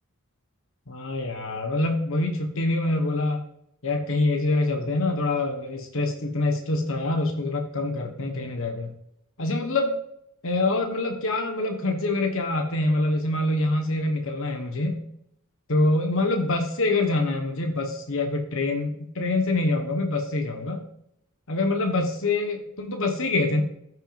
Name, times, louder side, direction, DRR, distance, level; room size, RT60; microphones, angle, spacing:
voice 1, 0.9-3.4 3.8-8.9 9.4-9.9 10.4-15.0 15.7-20.8 21.5-23.6, left 2 dB, 65° left, 3 dB, 1.3 m, -25 dB
14.0 x 6.4 x 2.6 m, 0.74 s
head